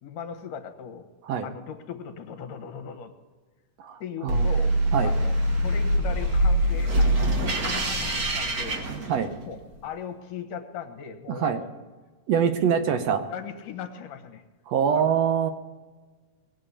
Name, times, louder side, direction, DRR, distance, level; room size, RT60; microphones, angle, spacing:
voice 1, 0.0-1.1 1.4-3.1 4.0-4.7 5.0-5.3 5.6-7.2 7.6-8.8 9.4-9.6 9.8-11.7 13.3-14.4 14.9-15.1, left 7 dB, 75° left, 6 dB, 2.8 m, -38 dB
voice 2, 3.8-4.5 4.9-5.1 9.1-9.3 11.3-11.6 12.3-13.2 14.7-15.5, right 7 dB, 70° right, 8 dB, 1.7 m, -24 dB
sound 1, 4.3-9.6, right 1 dB, 45° right, 1.2 m, -24 dB
20.5 x 7.7 x 8.3 m, 1.3 s
omnidirectional pair, 3.8 m